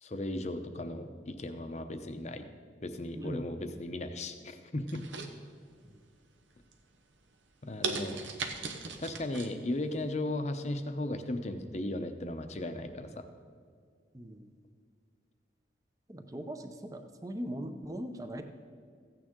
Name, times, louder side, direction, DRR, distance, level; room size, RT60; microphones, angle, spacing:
voice 1, 0.0-2.5 2.8-5.0 7.6-8.2 9.0-13.3, left 1 dB, 35° left, 8 dB, 0.7 m, -36 dB
sound 1, 4.9-5.9 6.3-6.7 7.2-7.3 7.8-9.5 9.9-10.0, right 4 dB, 80° right, 0.9 m, -37 dB
voice 2, 14.1-14.5 16.1-18.4, equal, 20° right, 7 dB, 0.7 m, -40 dB
14.5 x 9.0 x 3.7 m, 2.1 s
head